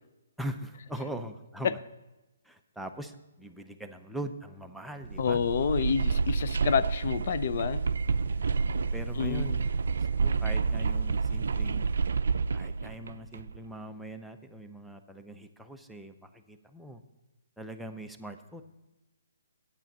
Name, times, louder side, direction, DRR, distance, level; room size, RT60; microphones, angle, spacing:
voice 1, 0.4-1.8 2.4-5.4 8.4-9.7 10.0-11.9 12.5-17.0 17.6-18.6, right 1 dB, ahead, 4 dB, 0.5 m, -41 dB
sound 1, 5.0-13.6, right 5 dB, 75° right, 0.4 m, -29 dB
voice 2, 5.2-7.8 9.2-9.4, left 7 dB, 50° left, 14 dB, 0.4 m, -28 dB
9.0 x 8.6 x 5.3 m, 1.1 s
hypercardioid pair, 155°, 0 cm